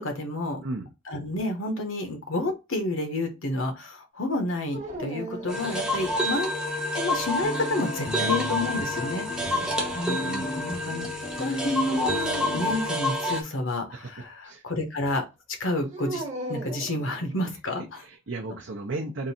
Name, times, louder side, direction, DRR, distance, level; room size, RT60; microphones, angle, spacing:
voice 1, 0.0-0.6 1.1-6.5 6.9-9.6 9.9-10.2 10.5-11.1 11.4-15.2 15.6-18.0, left 2 dB, 70° left, 5 dB, 1.1 m, -30 dB
sound 1, 4.7-6.3 7.9-9.0 11.9-12.7 15.9-17.6, right 1 dB, 35° right, 1.0 m, -37 dB
sound 2, 5.5-13.4, left 1 dB, 5° right, 0.6 m, -29 dB
sound 3, 7.4-12.8, left 2 dB, 35° left, 0.6 m, -35 dB
voice 2, 10.2-10.5 13.9-14.1 14.4-14.6 18.0-19.3, right 2 dB, 60° right, 0 dB, 0.6 m, -35 dB
3.7 x 2.6 x 4.2 m, 0.25 s
head